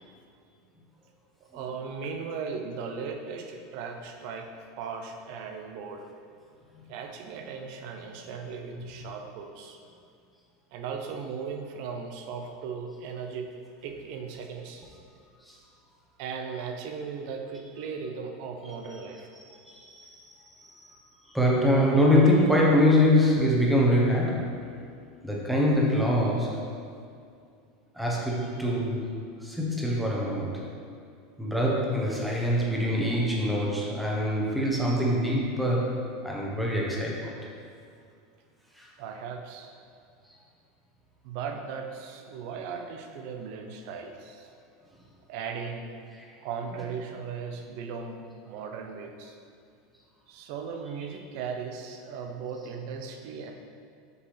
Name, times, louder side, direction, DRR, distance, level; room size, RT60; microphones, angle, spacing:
voice 1, 1.4-4.5 4.8-6.1 6.9-9.8 10.7-13.5 13.8-14.9 16.2-19.3 39.0-39.7 41.2-44.5 45.3-46.0 46.4-49.4 50.3-53.5, right 5 dB, 60° right, 4 dB, 0.6 m, -37 dB
voice 2, 19.3-20.3 20.6-21.0 21.3-24.6 25.2-26.7 27.9-29.1 29.4-30.6 31.4-37.4 38.8-38.9 46.7-46.9 52.6-52.7, left 1 dB, ahead, -4 dB, 1.0 m, -24 dB
6.7 x 4.7 x 3.3 m, 2.3 s
supercardioid pair, 145°, 0 cm